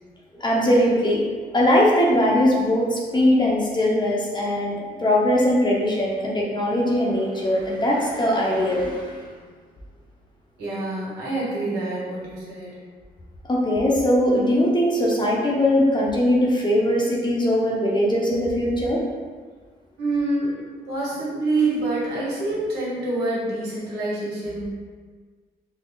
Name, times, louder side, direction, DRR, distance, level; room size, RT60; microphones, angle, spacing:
voice 1, 0.3-1.2 1.5-9.2 13.5-19.0, left 1 dB, 25° left, -3 dB, 0.9 m, -20 dB
voice 2, 10.6-12.7 20.0-24.7, right 2 dB, 85° right, -7 dB, 1.5 m, -26 dB
4.0 x 2.1 x 3.9 m, 1.5 s
cardioid pair, 85°, 17 cm